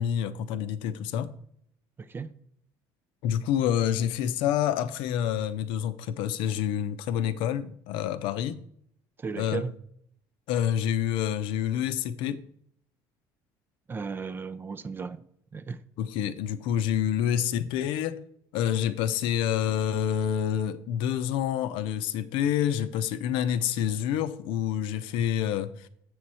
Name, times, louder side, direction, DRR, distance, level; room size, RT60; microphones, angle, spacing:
voice 1, 0.0-1.3 3.2-8.6 9.4-9.6 10.5-12.4 16.0-18.2 18.5-25.9, left 10 dB, 75° left, 0.6 m, -28 dB
voice 2, 2.0-2.3 9.2-9.7 13.9-15.2 15.5-15.8, right 5 dB, 25° right, 0.4 m, -35 dB
7.8 x 6.3 x 4.2 m
cardioid pair, 120°, 9 cm